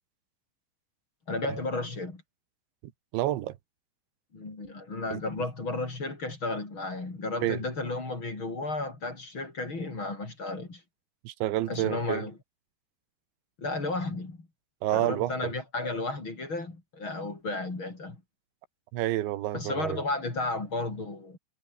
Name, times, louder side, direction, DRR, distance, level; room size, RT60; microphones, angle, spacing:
voice 1, 1.3-2.2 4.3-10.8 11.7-12.3 13.6-14.5 14.9-18.2 19.5-21.4, left 2 dB, 25° left, 5.5 m, -33 dB
voice 2, 3.1-3.6 5.1-5.2 7.4-7.6 11.3-12.3 14.8-15.4 18.9-20.0, right 14 dB, 90° right, 3.7 m, -29 dB
omnidirectional pair, 5.1 m